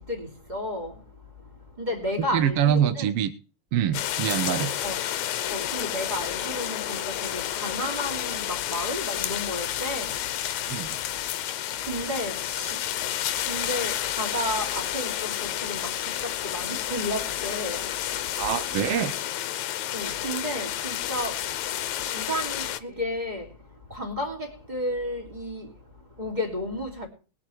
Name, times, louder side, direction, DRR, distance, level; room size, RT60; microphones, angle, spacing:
voice 1, 0.1-0.9 1.8-3.0 4.5-5.0 5.5-10.1 11.9-12.7 13.5-15.3 15.6-15.9 16.4-17.8 19.9-21.3 22.1-23.4 23.9-24.4 24.7-25.7 26.2-27.1, left 1 dB, 15° right, 2.7 m, -32 dB
voice 2, 2.3-3.3 3.7-4.7 10.7-11.0 18.4-19.2, right 9 dB, 65° right, 1.6 m, -25 dB
sound 1, 3.9-22.8, left 12 dB, 80° left, 2.1 m, -30 dB
21.0 x 7.6 x 4.6 m
omnidirectional pair, 3.3 m